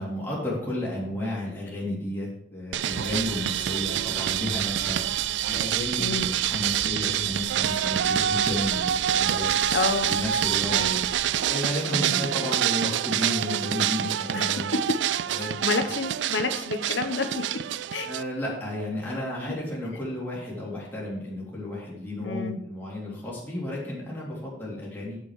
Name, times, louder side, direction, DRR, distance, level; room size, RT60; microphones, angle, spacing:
voice 1, 0.0-9.5 10.0-10.9 11.4-14.7 15.3-15.5 18.0-25.2, left 1 dB, 10° left, -6 dB, 3.2 m, -32 dB
sound 1, 2.7-18.2, right 11 dB, 70° right, 0.3 m, -26 dB
sound 2, 2.9-11.4, right 1 dB, 25° right, 1.5 m, -44 dB
voice 2, 6.0-6.3 9.7-10.1 10.7-11.0 11.9-12.2 14.3-14.4 15.6-17.4 17.9-18.1 22.2-22.6, left 3 dB, 80° left, 8 dB, 1.1 m, -29 dB
7.7 x 7.5 x 4.9 m, 0.70 s
head